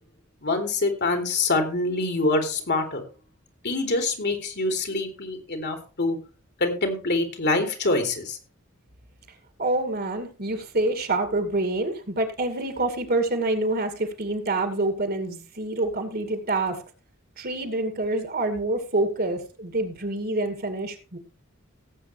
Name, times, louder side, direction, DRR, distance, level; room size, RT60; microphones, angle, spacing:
voice 1, 0.4-3.0 3.6-6.2 6.6-8.4, left 2 dB, 55° left, 5 dB, 3.1 m, -25 dB
voice 2, 9.6-16.8 17.4-21.2, right 2 dB, 50° right, 7 dB, 2.4 m, -27 dB
18.0 x 8.3 x 3.3 m, 0.33 s
head